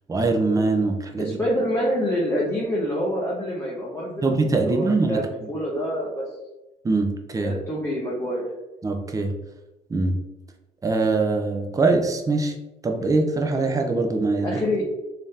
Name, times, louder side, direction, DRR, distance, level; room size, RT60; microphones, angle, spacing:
voice 1, 0.1-1.4 4.2-5.2 6.8-7.5 8.8-9.3 9.9-10.2 10.8-12.5 12.8-14.6, right 3 dB, 20° right, 3 dB, 0.6 m, -22 dB
voice 2, 1.2-4.3 4.6-5.2 5.5-6.3 7.4-8.5 14.4-14.8, equal, 15° left, -5 dB, 0.8 m, -26 dB
3.5 x 2.8 x 3.2 m, 1.0 s
cardioid pair, 110°, 17 cm